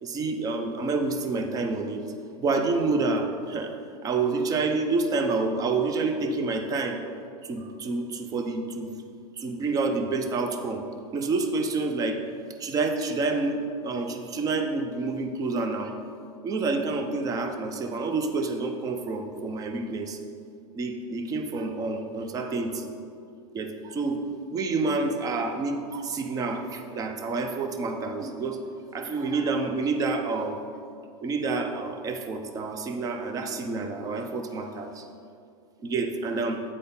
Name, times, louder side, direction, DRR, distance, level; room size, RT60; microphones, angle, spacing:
voice 1, 0.0-2.1 2.4-3.7 4.0-7.0 7.4-8.9 9.4-10.8 11.1-12.2 12.6-16.0 16.4-20.2 20.7-22.9 23.5-24.2 24.5-28.6 28.9-30.6 31.2-35.0 35.8-36.6, right 3 dB, 20° right, 6 dB, 0.6 m, -28 dB
8.6 x 4.2 x 5.3 m, 2.4 s
supercardioid pair, 135°, 19 cm